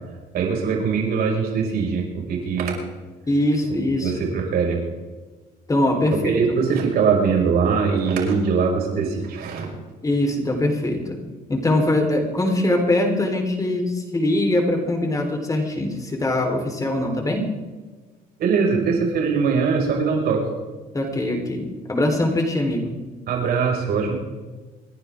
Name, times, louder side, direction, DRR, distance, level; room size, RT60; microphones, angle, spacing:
voice 1, 0.3-2.8 4.0-4.8 6.2-9.7 18.4-20.4 23.3-24.1, right 5 dB, 65° right, 0 dB, 6.0 m, -21 dB
voice 2, 3.3-4.3 5.7-6.3 10.0-11.2 11.5-17.4 20.9-22.9, left 1 dB, 20° left, 3 dB, 4.1 m, -22 dB
27.5 x 10.5 x 3.7 m, 1.3 s
cardioid pair, 110°, 17 cm